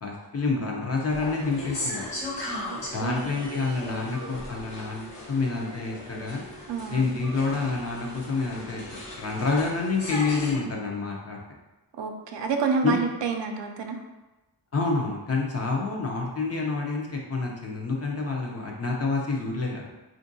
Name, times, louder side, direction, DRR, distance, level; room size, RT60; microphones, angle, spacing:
voice 1, 0.0-2.0 2.9-6.4 6.9-8.8 9.2-11.4 12.8-12.9 14.7-19.9, left 3 dB, 35° left, -1 dB, 0.5 m, -28 dB
sound 1, 1.1-10.5, left 1 dB, 80° left, 1.3 m, -37 dB
voice 2, 3.0-3.3 6.7-7.1 11.9-14.0, right 5 dB, 85° right, 4 dB, 0.5 m, -28 dB
3.6 x 2.5 x 2.6 m, 1.1 s
wide cardioid pair, 135°, 42 cm